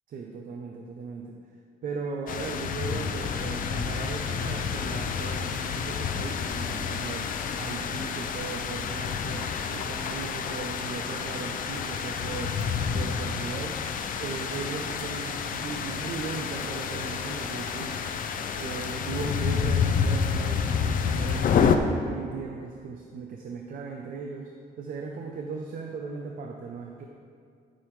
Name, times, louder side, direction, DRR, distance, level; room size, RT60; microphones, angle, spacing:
voice 1, 0.1-1.4 1.8-12.6 12.9-13.8 14.2-18.0 18.4-24.5 24.8-27.1, right 4 dB, 60° right, 1 dB, 0.7 m, -37 dB
sound 1, 2.3-21.8, left 6 dB, 60° left, 0.5 m, -29 dB
12.5 x 6.3 x 3.2 m, 2.2 s
wide cardioid pair, 160°, 16 cm